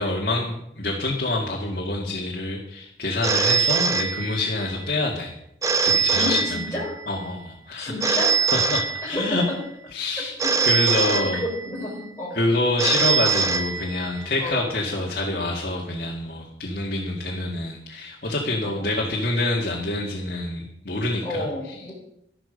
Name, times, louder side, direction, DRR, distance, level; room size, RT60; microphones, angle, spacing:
voice 1, 0.0-5.3 5.8-6.8 7.1-9.4 9.9-10.3 10.6-11.4 12.3-21.9, left 2 dB, 55° left, -2 dB, 2.0 m, -27 dB
Telephone, 3.2-4.7 5.6-7.1 8.0-9.5 10.4-11.9 12.8-14.3, right 5 dB, 20° right, 0.7 m, -23 dB
voice 2, 6.1-7.0 7.8-8.4 9.0-9.6 10.2-10.3 10.6-10.7 11.1-12.4 14.4-14.7 18.6-18.9 21.2-21.9, left 1 dB, 15° left, -2 dB, 3.9 m, -30 dB
13.0 x 12.0 x 5.2 m, 0.78 s
head